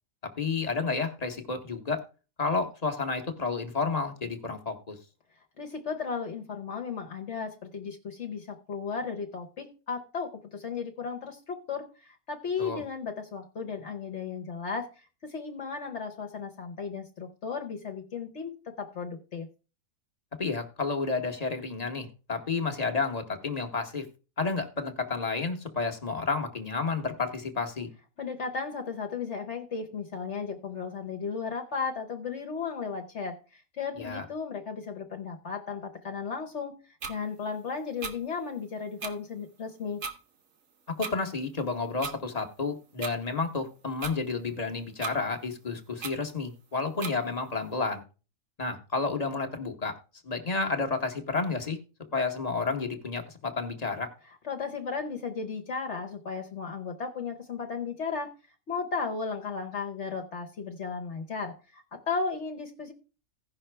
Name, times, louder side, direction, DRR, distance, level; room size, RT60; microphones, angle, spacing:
voice 1, 0.4-2.0 2.4-5.0 12.6-12.8 20.4-24.1 24.4-27.9 34.0-34.3 41.0-48.0 48.6-49.9 50.2-51.8 52.1-54.1, left 4 dB, 30° left, 5 dB, 1.1 m, -31 dB
voice 2, 5.6-19.5 28.2-36.7 37.1-40.0 54.4-58.3 58.7-62.9, left 5 dB, 60° left, 3 dB, 1.2 m, -35 dB
sound 1, 37.0-37.2 38.0-38.1 39.0-39.1 40.0-40.2 41.0-41.1 42.0-42.2 43.0-43.1 44.0-44.1 45.0-45.1 46.0-46.1 47.0-47.1, right 5 dB, 70° right, 1.4 m, -35 dB
16.5 x 5.7 x 3.3 m, 0.34 s
omnidirectional pair, 1.4 m